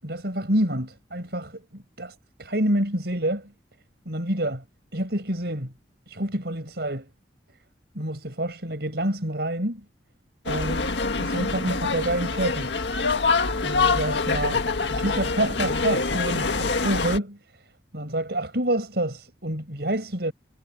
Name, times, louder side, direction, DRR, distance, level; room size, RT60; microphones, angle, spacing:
voice 1, 0.0-3.5 4.0-4.6 4.9-5.7 6.1-7.1 7.9-9.8 10.4-10.9 11.2-12.7 13.6-17.4 17.9-20.3, right 1 dB, 65° right, 6.7 m, -28 dB
sound 1, 10.5-17.2, left 4 dB, 85° left, 1.8 m, -25 dB
head